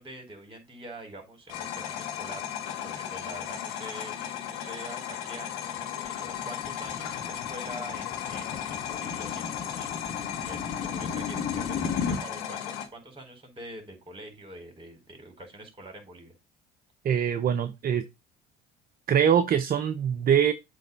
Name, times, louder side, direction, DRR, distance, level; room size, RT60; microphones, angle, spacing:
voice 1, 0.0-9.9 10.2-16.3, right 1 dB, 25° right, 4.1 m, -45 dB
sound 1, 1.5-12.9, left 9 dB, 80° left, 1.6 m, -35 dB
sound 2, 5.8-12.2, left 5 dB, 50° left, 1.6 m, -35 dB
voice 2, 17.0-18.0 19.1-20.5, right 8 dB, 45° right, 0.8 m, -23 dB
7.7 x 3.5 x 5.2 m
hypercardioid pair, 70°, 21 cm